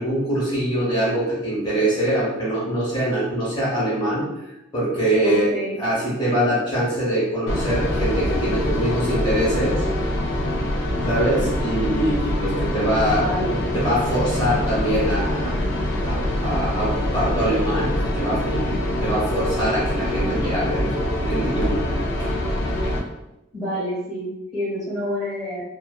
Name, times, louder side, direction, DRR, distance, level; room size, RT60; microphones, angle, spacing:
voice 1, 0.0-4.2 4.7-5.5 5.8-9.8 11.0-15.5 16.0-21.9 22.3-22.4, right 1 dB, 25° left, -8 dB, 0.9 m, -23 dB
voice 2, 5.2-5.8 13.1-13.5 23.5-25.6, left 1 dB, ahead, -10 dB, 1.1 m, -27 dB
sound 1, 7.5-23.0, left 1 dB, 70° left, 0.4 m, -24 dB
2.4 x 2.3 x 2.2 m, 0.91 s
head